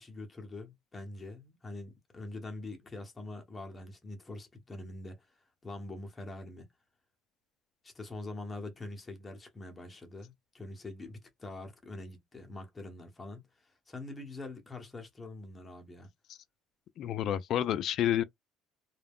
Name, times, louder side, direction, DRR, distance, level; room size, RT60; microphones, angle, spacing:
voice 1, 0.0-5.3 5.6-6.7 7.8-16.1, left 2 dB, 20° left, 0.9 m, -44 dB
voice 2, 17.0-18.2, left 11 dB, 55° left, 0.3 m, -29 dB
2.3 x 2.0 x 3.5 m
cardioid pair, 125°, 0 cm